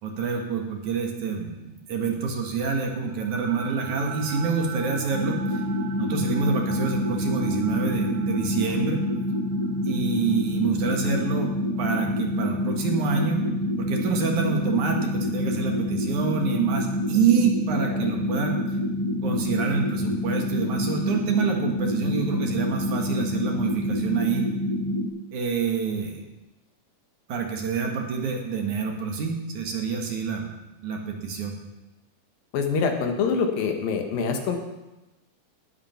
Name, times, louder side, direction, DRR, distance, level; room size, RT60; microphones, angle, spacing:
voice 1, 0.0-5.6 6.0-9.0 9.9-11.5 11.8-13.4 13.8-18.6 19.2-24.5 25.3-26.3 27.3-30.5 30.8-31.6, right 5 dB, 60° right, 2 dB, 2.8 m, -27 dB
sound 1, 2.9-13.1, right 8 dB, 85° right, 3.4 m, -40 dB
sound 2, 5.1-25.1, left 1 dB, 30° right, 1.7 m, -27 dB
voice 2, 32.5-34.6, left 5 dB, 75° left, 4 dB, 3.2 m, -25 dB
19.0 x 8.8 x 5.8 m, 1.0 s
omnidirectional pair, 4.2 m